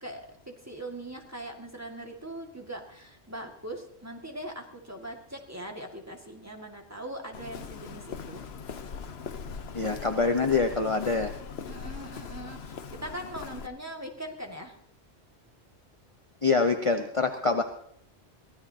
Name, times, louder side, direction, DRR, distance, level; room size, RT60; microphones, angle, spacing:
voice 1, 0.0-8.4 11.7-14.8, right 1 dB, 15° right, 2 dB, 2.0 m, -41 dB
Walk footsteps, 7.3-13.7, left 6 dB, 70° left, 1.1 m, -40 dB
voice 2, 9.7-11.3 16.4-17.6, left 4 dB, 30° left, 5 dB, 0.9 m, -25 dB
23.5 x 16.5 x 2.9 m, 0.65 s
omnidirectional pair, 1.1 m